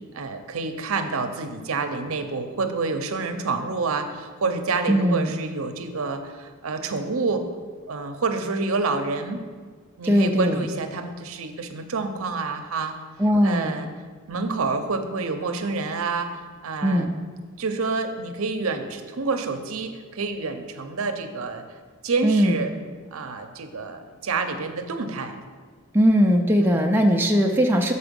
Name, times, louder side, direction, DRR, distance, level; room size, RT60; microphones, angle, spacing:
voice 1, 0.1-7.4 7.9-9.4 10.0-12.9 13.4-13.9 14.3-17.1 17.6-21.6 22.0-22.7 23.1-25.4 26.6-26.8, right 4 dB, 70° right, 7 dB, 0.6 m, -28 dB
voice 2, 4.9-5.3 10.1-10.7 13.2-13.7 16.8-17.1 22.2-22.6 25.9-27.9, equal, 10° right, 1 dB, 0.3 m, -19 dB
6.7 x 4.9 x 5.2 m, 1.5 s
head